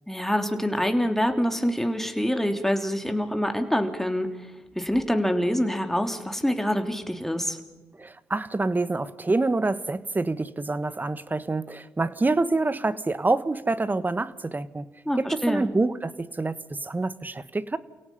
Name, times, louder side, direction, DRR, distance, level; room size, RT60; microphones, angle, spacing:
voice 1, 0.1-4.3 4.7-7.6 15.0-15.7, equal, 5° left, 6 dB, 3.3 m, -25 dB
voice 2, 8.0-14.9 15.2-17.8, right 3 dB, 25° right, 15 dB, 1.4 m, -26 dB
29.0 x 17.5 x 5.7 m, 1.1 s
supercardioid pair, 55°, 7 cm